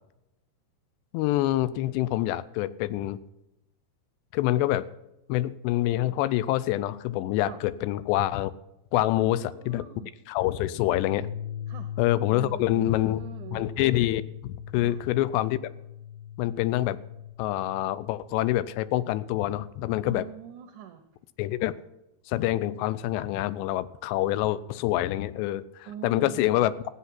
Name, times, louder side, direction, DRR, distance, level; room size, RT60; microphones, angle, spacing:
voice 1, 1.1-3.2 4.3-4.9 5.3-8.5 8.9-9.9 10.3-11.3 12.0-13.2 13.5-15.6 16.4-17.0 17.4-20.3 21.4-21.8 22.3-26.7, left 14 dB, 90° left, 17 dB, 2.8 m, -26 dB
voice 2, 9.2-10.1 11.7-11.9 12.3-13.6 14.8-15.0 20.0-21.0 25.9-26.8, right 9 dB, 80° right, 6 dB, 1.8 m, -43 dB
sound 1, 11.0-17.3, left 10 dB, 70° left, 7.1 m, -39 dB
15.5 x 8.4 x 5.8 m, 0.90 s
omnidirectional pair, 4.9 m